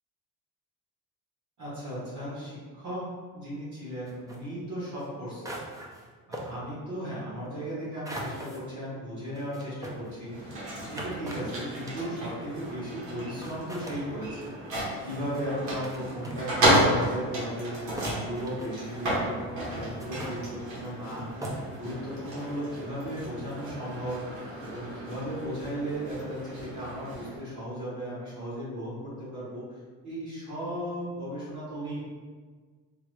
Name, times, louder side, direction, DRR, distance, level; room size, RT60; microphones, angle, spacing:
voice 1, 1.6-3.0 3.3-5.6 6.3-10.5 10.8-14.5 15.0-29.6 30.0-32.0, equal, 50° right, -8 dB, 1.4 m, -36 dB
sound 1, 4.0-4.4 5.0-5.1 5.4-6.1 6.3-6.5 8.0-8.6 9.3-12.3 13.1-13.2 13.4-14.0 15.1-15.4 15.8-16.0 16.2-16.9 17.5-17.6 18.0-19.1 19.8-20.4 21.0-21.1 21.4-21.8, right 1 dB, 10° right, 0.3 m, -39 dB
sound 2, 10.2-27.4, right 1 dB, 80° right, 1.2 m, -32 dB
3.6 x 3.1 x 2.2 m, 1.5 s
cardioid pair, 130°, 36 cm